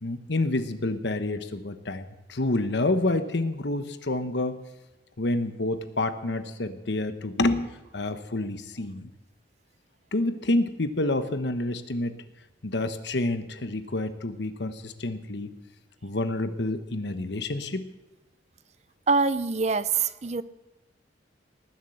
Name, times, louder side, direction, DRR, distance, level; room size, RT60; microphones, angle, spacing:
voice 1, 0.0-4.6 5.2-9.1 10.1-12.2 12.6-15.5 16.0-17.9, left 2 dB, 65° left, 10 dB, 1.1 m, -28 dB
voice 2, 19.1-20.4, right 4 dB, 35° right, 14 dB, 0.6 m, -24 dB
19.0 x 7.4 x 7.9 m, 1.1 s
head